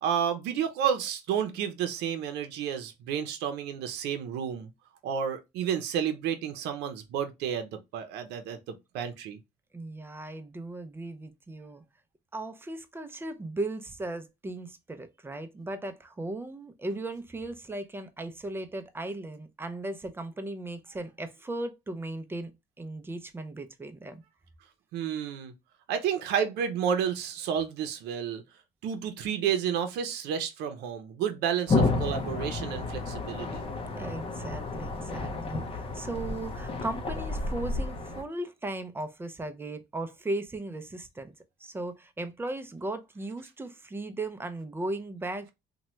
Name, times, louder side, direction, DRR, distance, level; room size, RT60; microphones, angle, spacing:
voice 1, 0.0-4.7 5.0-9.4 24.9-25.5 25.9-28.4 28.8-33.6, right 8 dB, 85° right, 0.6 m, -31 dB
voice 2, 9.7-11.8 12.3-22.5 22.8-24.2 34.0-41.3 41.6-45.5, right 2 dB, 15° right, 0.4 m, -37 dB
sound 1, 31.7-38.2, left 3 dB, 35° left, 0.6 m, -31 dB
2.8 x 2.2 x 3.0 m
cardioid pair, 110°, 17 cm